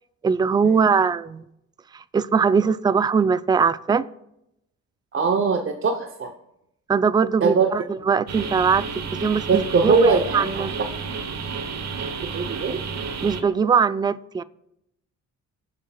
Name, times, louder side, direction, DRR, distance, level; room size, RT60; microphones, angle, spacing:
voice 1, 0.2-1.4 1.9-4.1 6.9-10.7 13.2-14.4, right 6 dB, 15° right, 16 dB, 0.3 m, -21 dB
voice 2, 5.1-6.3 7.4-7.7 9.5-10.6 12.3-12.8, right 5 dB, 45° right, 4 dB, 0.8 m, -21 dB
sound 1, 8.3-13.4, right 5 dB, 60° right, 1.1 m, -31 dB
21.5 x 7.4 x 2.3 m, 0.83 s
cardioid pair, 90°, 30 cm